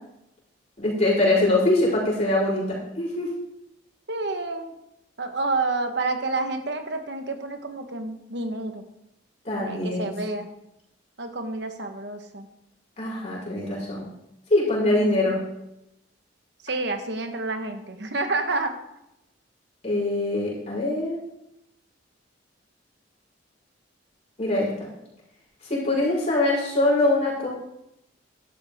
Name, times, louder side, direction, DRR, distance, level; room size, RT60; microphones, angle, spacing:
voice 1, 0.8-3.3 9.4-10.1 13.0-14.1 14.5-15.4 19.8-21.2 24.4-24.9 25.7-27.5, left 2 dB, 35° left, -5 dB, 5.2 m, -23 dB
voice 2, 4.1-4.7 5.2-8.8 9.6-10.5 11.2-12.5 14.8-15.3 16.6-18.7, right 3 dB, 60° right, 6 dB, 1.3 m, -29 dB
12.5 x 12.0 x 3.7 m, 0.85 s
head